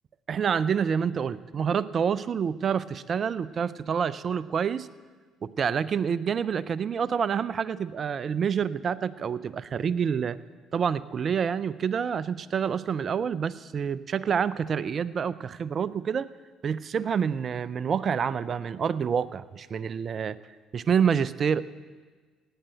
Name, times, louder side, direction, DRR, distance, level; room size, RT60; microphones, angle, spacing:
voice 1, 0.3-4.9 5.4-10.4 10.7-16.3 16.6-20.4 20.7-21.6, right 7 dB, 50° right, 18 dB, 0.6 m, -27 dB
17.0 x 8.9 x 7.9 m, 1.4 s
hypercardioid pair, 60°, 0 cm